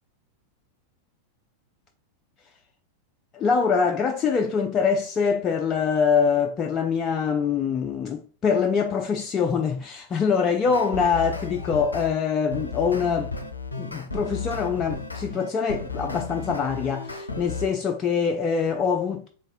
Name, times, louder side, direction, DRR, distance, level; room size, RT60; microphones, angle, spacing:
voice 1, 3.3-13.3 13.8-19.3, left 6 dB, 25° left, 0.4 m, -24 dB
sound 1, 10.7-12.1 12.5-17.7, left 3 dB, 80° left, 0.5 m, -34 dB
3.9 x 3.6 x 2.5 m
figure-of-eight pair, 90°, 0 cm